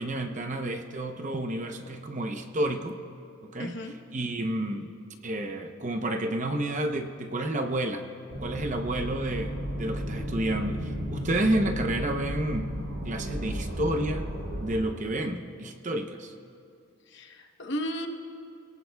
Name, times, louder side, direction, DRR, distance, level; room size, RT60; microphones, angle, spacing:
voice 1, 0.0-3.0 3.5-3.7 4.1-4.9 5.2-8.1 8.4-12.7 13.0-14.2 14.6-16.3, right 1 dB, 35° right, 5 dB, 0.8 m, -30 dB
voice 2, 3.6-3.9 17.1-18.1, equal, 55° left, 4 dB, 1.1 m, -34 dB
sound 1, 8.3-14.8, equal, 65° right, 3.9 m, -34 dB
27.0 x 18.0 x 2.3 m, 2.4 s
head